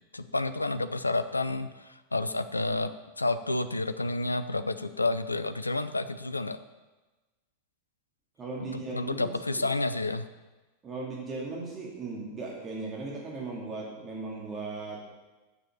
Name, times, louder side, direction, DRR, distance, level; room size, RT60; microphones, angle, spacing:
voice 1, 0.1-2.9 3.2-6.6 8.6-10.2, left 2 dB, 80° left, 11 dB, 0.5 m, -30 dB
voice 2, 8.4-9.6 10.8-15.0, right 3 dB, 25° right, -4 dB, 2.5 m, -37 dB
7.5 x 6.8 x 7.4 m, 1.2 s
figure-of-eight pair, 90°, 0 cm